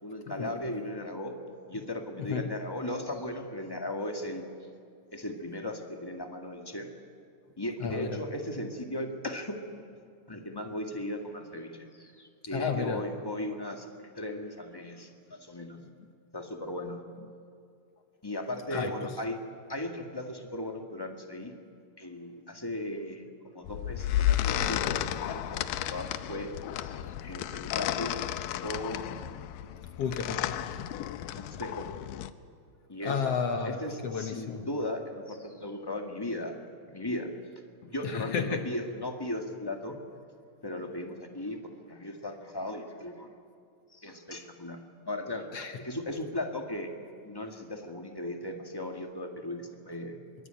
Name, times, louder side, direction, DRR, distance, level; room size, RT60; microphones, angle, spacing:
voice 1, 0.0-1.3 1.7-4.4 5.1-6.9 7.6-9.6 10.3-13.9 14.1-15.8 16.3-17.0 18.2-19.4 19.7-21.5 22.0-26.5 26.8-28.2 28.6-29.2 31.3-31.9 32.9-33.2 33.6-36.5 36.9-37.3 37.9-40.0 40.6-41.6 41.9-43.3 43.9-44.8 45.0-45.5 45.8-46.9 47.2-50.2, left 1 dB, 10° left, 3 dB, 1.1 m, -37 dB
voice 2, 2.2-2.5 7.8-8.2 12.5-13.0 18.7-19.1 30.0-30.9 33.0-34.7 38.0-38.7 45.5-45.8, left 6 dB, 65° left, 6 dB, 1.7 m, -33 dB
sound 1, 23.7-32.3, left 12 dB, 85° left, 2.5 m, -32 dB
25.0 x 23.0 x 9.2 m, 2.3 s
omnidirectional pair, 3.8 m